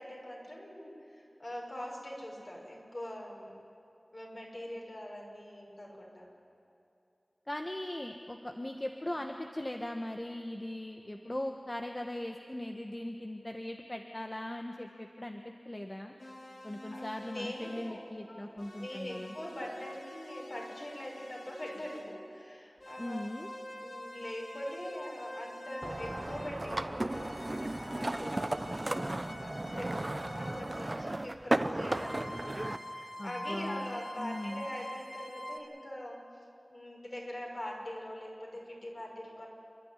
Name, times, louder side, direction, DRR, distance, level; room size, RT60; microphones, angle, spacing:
voice 1, 0.0-3.5 4.1-6.3 9.1-9.2 16.9-18.5 18.8-23.3 23.8-30.0 30.3-36.2 36.7-39.5, left 1 dB, 50° left, -2 dB, 6.1 m, -43 dB
voice 2, 7.5-16.1 16.6-19.3 23.0-23.5 33.2-34.7, left 1 dB, 30° left, 3 dB, 1.3 m, -39 dB
sound 1, 16.2-18.1 18.6-22.1 22.8-26.7 27.1-31.0 31.9-35.6, left 1 dB, 70° left, 2.8 m, -46 dB
sound 2, 25.8-32.8, right 1 dB, 40° right, 0.8 m, -35 dB
29.5 x 11.5 x 10.0 m, 2.6 s
wide cardioid pair, 45°, 0 cm